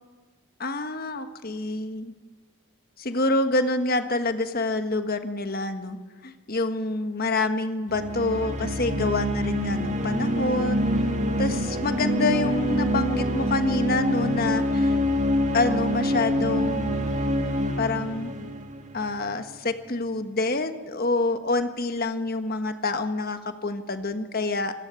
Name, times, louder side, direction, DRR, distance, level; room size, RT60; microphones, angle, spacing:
voice 1, 0.6-2.1 3.0-6.0 6.2-10.9 11.4-15.0 15.5-17.1 17.8-18.3 18.9-24.7, left 2 dB, 45° left, 8 dB, 1.4 m, -27 dB
sound 1, 7.9-19.4, equal, 35° right, 1.9 m, -26 dB
26.0 x 14.5 x 9.0 m, 1.4 s
head